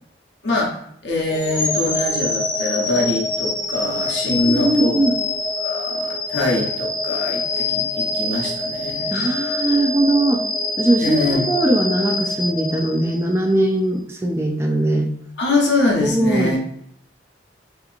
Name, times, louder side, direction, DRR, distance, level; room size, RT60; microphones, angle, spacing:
voice 1, 0.4-0.8 1.0-5.0 5.6-9.2 11.0-11.4 15.4-16.6, left 2 dB, 70° left, -2 dB, 0.8 m, -23 dB
sound 1, 1.3-13.4, left 2 dB, 45° left, 0.8 m, -25 dB
voice 2, 4.3-5.2 9.1-10.4 10.8-15.1 16.0-16.6, right 1 dB, 15° right, 3 dB, 0.3 m, -20 dB
3.7 x 2.8 x 2.4 m, 0.70 s
head